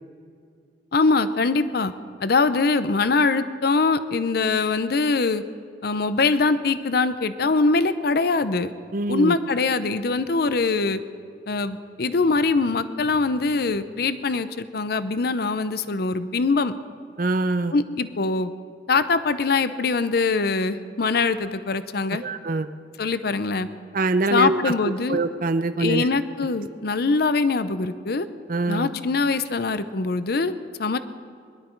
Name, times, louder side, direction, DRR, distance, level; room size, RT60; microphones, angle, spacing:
voice 1, 0.9-1.9 2.2-5.4 5.8-8.7 9.1-11.0 11.5-16.7 17.7-18.5 18.9-22.2 23.0-23.7 24.3-25.2 25.8-28.3 28.7-31.0, left 3 dB, 60° left, 12 dB, 0.6 m, -23 dB
voice 2, 8.9-9.3 17.2-17.7 22.2-22.7 23.9-24.6 25.1-26.1 28.5-28.9, right 2 dB, 50° right, 12 dB, 0.6 m, -23 dB
22.5 x 12.0 x 4.5 m, 2.3 s
head